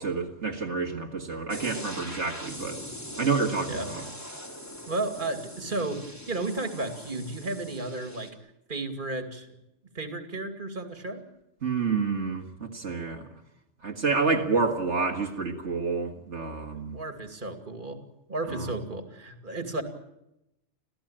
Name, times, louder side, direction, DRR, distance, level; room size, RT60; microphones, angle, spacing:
voice 1, 0.0-2.8 3.2-4.1 11.6-13.2 13.8-17.0 18.5-18.7, right 4 dB, 75° right, 2.2 m, -29 dB
sound 1, 1.5-8.3, equal, 15° left, 3.6 m, -41 dB
voice 2, 4.9-8.4 8.7-9.5 9.9-11.2 16.7-18.0 18.3-19.8, right 2 dB, 45° right, 2.6 m, -33 dB
27.0 x 16.0 x 8.9 m
omnidirectional pair, 1.2 m